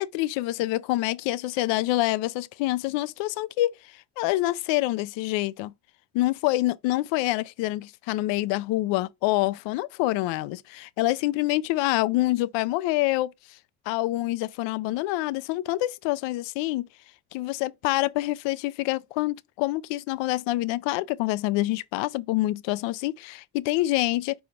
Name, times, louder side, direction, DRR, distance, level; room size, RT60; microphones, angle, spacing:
voice 1, 0.0-5.7 6.1-13.6 13.9-16.9 17.3-24.3, left 17 dB, 75° left, 0.6 m, -26 dB
4.9 x 4.8 x 5.1 m
hypercardioid pair, 60°, 44 cm